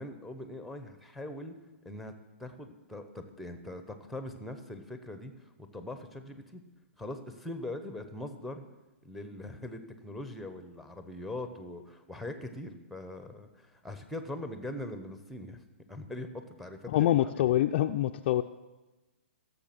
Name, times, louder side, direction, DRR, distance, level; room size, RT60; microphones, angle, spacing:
voice 1, 0.0-1.5 1.8-2.1 2.4-6.6 7.0-8.6 9.0-15.6 15.9-17.6, left 1 dB, ahead, 8 dB, 1.0 m, -42 dB
voice 2, 16.9-18.4, left 13 dB, 45° left, 5 dB, 0.4 m, -25 dB
15.5 x 6.9 x 6.0 m, 1.1 s
hypercardioid pair, 130°, 7 cm